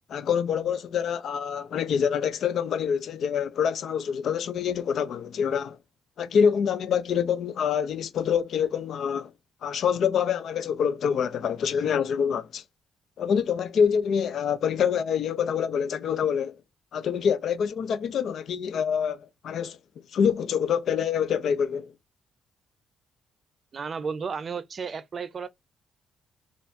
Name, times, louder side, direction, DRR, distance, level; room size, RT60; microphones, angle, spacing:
voice 1, 0.1-5.8 6.2-9.3 9.6-12.6 13.2-16.6 16.9-19.8 20.1-21.9, left 7 dB, 65° left, 0.4 m, -26 dB
voice 2, 23.7-25.5, right 5 dB, 45° right, 0.5 m, -33 dB
4.2 x 2.4 x 2.6 m
cardioid pair, 90°, 0 cm